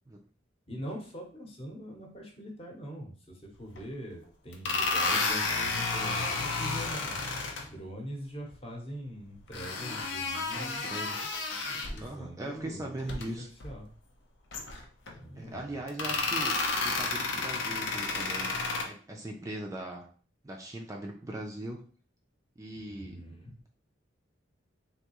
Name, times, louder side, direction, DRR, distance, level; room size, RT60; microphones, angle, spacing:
voice 1, 0.7-7.2 7.6-10.8 11.7-13.9 15.2-15.7 22.9-23.5, equal, 30° left, 0 dB, 0.8 m, -43 dB
sound 1, 3.8-3.9 4.5-7.7 9.5-12.1 13.0-13.2 13.6-13.7 14.5-15.1 15.9-18.8, left 3 dB, 85° left, 0.6 m, -31 dB
voice 2, 10.5-11.2 12.0-13.5 15.4-18.6 18.8-20.1 20.4-21.8 22.6-23.2, right 1 dB, 15° right, 1 dB, 0.4 m, -40 dB
3.5 x 2.7 x 2.9 m, 0.42 s
head